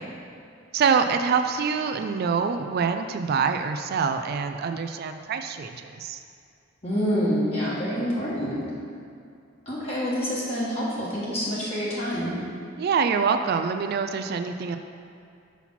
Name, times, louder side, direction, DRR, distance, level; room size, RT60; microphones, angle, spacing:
voice 1, 0.7-6.2 12.8-14.8, right 5 dB, 50° right, 7 dB, 0.3 m, -25 dB
voice 2, 6.8-8.6 9.6-12.4, equal, 30° left, -8 dB, 1.4 m, -27 dB
5.9 x 4.2 x 5.7 m, 2.5 s
head